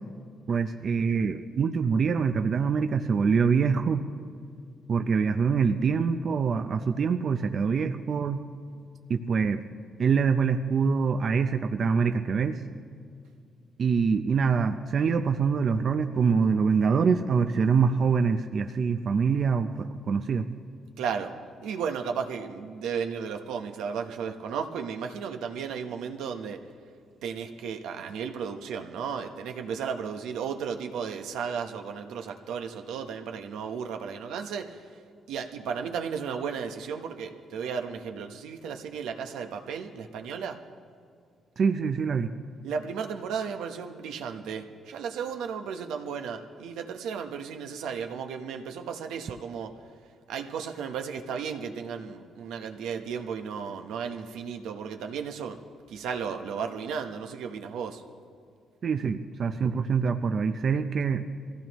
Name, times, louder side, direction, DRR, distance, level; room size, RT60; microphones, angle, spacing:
voice 1, 0.5-4.0 4.9-8.4 9.1-9.6 10.0-12.6 13.8-20.6 41.6-42.3 58.8-61.2, right 5 dB, 50° right, 7 dB, 0.6 m, -25 dB
voice 2, 21.0-21.3 21.6-26.6 27.2-34.8 35.3-40.6 42.6-49.7 50.3-55.6 55.9-58.0, right 6 dB, 85° right, 5 dB, 0.9 m, -34 dB
23.0 x 15.5 x 3.1 m, 2.2 s
cardioid pair, 90°, 0 cm